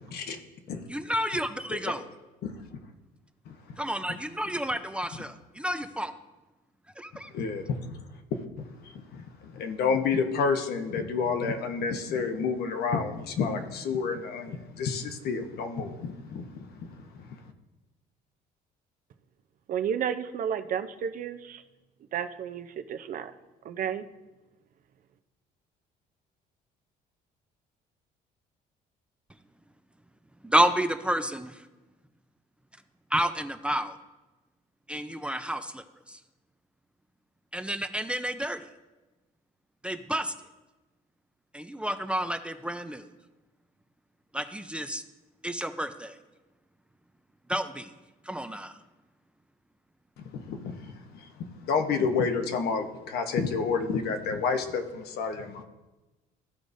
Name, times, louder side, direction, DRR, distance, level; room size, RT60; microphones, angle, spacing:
voice 1, 0.9-2.0 3.8-6.1 7.0-7.3 30.4-31.6 33.1-34.0 34.9-36.2 37.5-38.6 39.8-40.3 41.5-43.1 44.3-45.0 45.4-46.1 47.5-47.9 48.3-48.7, right 1 dB, 5° right, 8 dB, 0.4 m, -30 dB
voice 2, 3.5-3.8 7.3-7.9 8.3-17.3 50.2-55.6, left 5 dB, 70° left, 6 dB, 1.0 m, -30 dB
voice 3, 19.7-21.6 22.1-23.3 23.7-24.0, right 8 dB, 55° right, 9 dB, 0.6 m, -32 dB
14.5 x 4.8 x 2.7 m, 1.1 s
cardioid pair, 110°, 17 cm